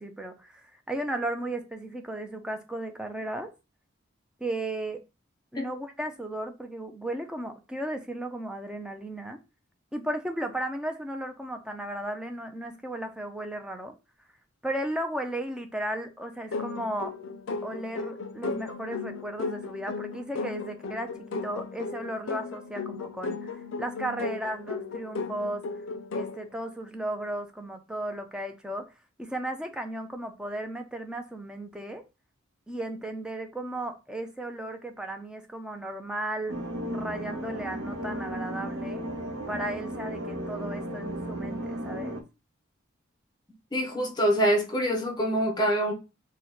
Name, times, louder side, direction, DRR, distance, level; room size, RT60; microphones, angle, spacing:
voice 1, 0.0-3.5 4.4-5.0 5.5-9.4 9.9-13.9 14.6-17.1 17.6-25.6 26.2-28.9 29.2-32.0 32.7-36.5 36.9-39.1 39.5-42.2, right 1 dB, 5° right, 0.3 m, -35 dB
sound 1, 16.5-26.5, left 4 dB, 65° left, 0.4 m, -35 dB
sound 2, 36.5-42.2, right 1 dB, 65° right, 0.5 m, -35 dB
voice 2, 43.7-45.9, equal, 20° left, 0.7 m, -25 dB
2.9 x 2.1 x 3.8 m
head